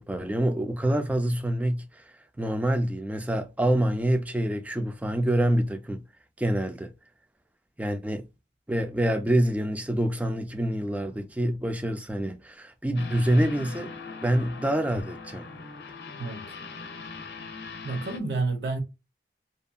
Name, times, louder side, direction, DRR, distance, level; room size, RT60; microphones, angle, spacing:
voice 1, 0.0-2.0 2.4-6.0 6.4-6.9 7.8-8.2 8.7-13.9 14.2-15.5, right 1 dB, 10° right, 0.3 m, -26 dB
sound 1, 13.0-18.2, left 4 dB, 70° left, 0.5 m, -41 dB
voice 2, 16.2-16.5 17.8-18.8, right 3 dB, 75° right, 0.8 m, -29 dB
2.8 x 2.5 x 2.3 m
head